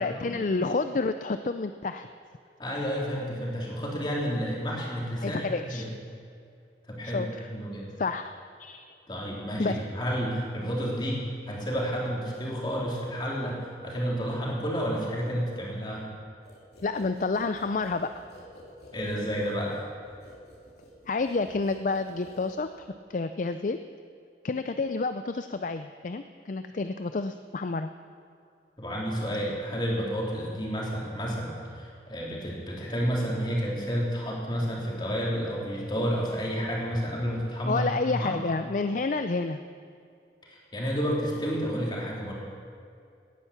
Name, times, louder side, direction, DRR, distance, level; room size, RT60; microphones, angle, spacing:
voice 1, 0.0-2.1 5.2-5.9 7.0-7.5 8.0-8.9 9.6-9.8 16.8-18.1 21.1-23.8 24.4-27.9 37.7-39.6, left 3 dB, 45° left, 9 dB, 0.4 m, -29 dB
voice 2, 2.6-5.9 6.9-7.9 9.1-16.1 18.9-19.8 28.8-38.4 40.4-42.3, equal, 25° left, -3 dB, 3.3 m, -30 dB
sound 1, 16.4-22.9, left 1 dB, 60° left, 3.3 m, -52 dB
18.0 x 10.0 x 7.3 m, 2.4 s
head